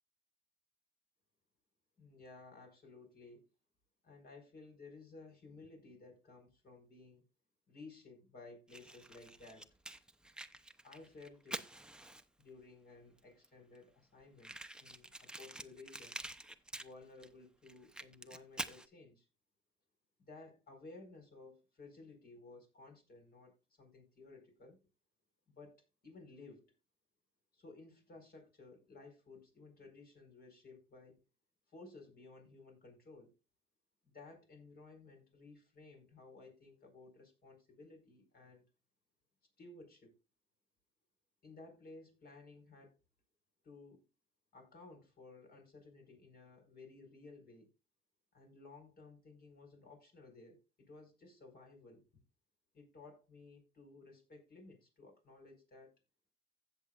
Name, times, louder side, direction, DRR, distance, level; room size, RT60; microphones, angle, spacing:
voice 1, 2.0-3.4 4.0-7.2 7.7-9.7 10.8-11.6 12.4-16.2 16.8-19.3 20.2-24.8 25.6-26.7 27.5-31.2 31.7-33.3 34.0-38.6 39.6-40.1 41.4-43.0 43.6-44.1 44.5-47.7 48.3-52.1 52.7-55.9, left 3 dB, 50° left, 4.7 m, -56 dB
Fire, 8.7-12.5 13.2-13.3 13.4-13.5 13.8-13.9 14.4-17.3 17.6-18.9, right 1 dB, 5° right, 0.7 m, -47 dB
16.0 x 6.9 x 2.4 m
cardioid pair, 90°, 20 cm